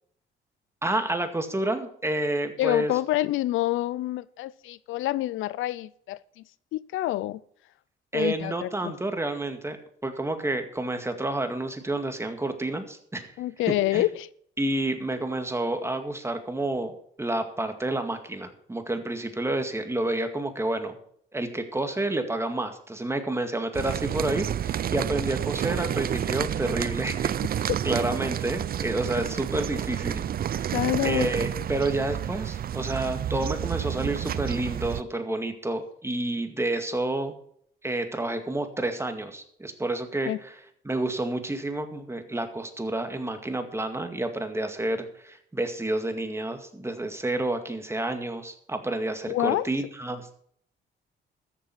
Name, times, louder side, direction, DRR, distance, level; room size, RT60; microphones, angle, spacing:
voice 1, 0.8-2.9 8.1-13.3 13.9-14.1 14.6-21.0 21.3-30.8 31.0-37.4 37.8-40.5 40.8-50.3, right 2 dB, 15° right, 2.1 m, -29 dB
voice 2, 2.6-6.4 6.7-7.4 8.1-8.9 13.4-14.3 30.7-31.3 40.3-40.4 49.3-49.7, left 15 dB, 85° left, 0.5 m, -27 dB
sound 1, 23.7-35.0, right 10 dB, 50° right, 0.5 m, -30 dB
13.5 x 7.6 x 5.9 m
cardioid pair, 90°, 20 cm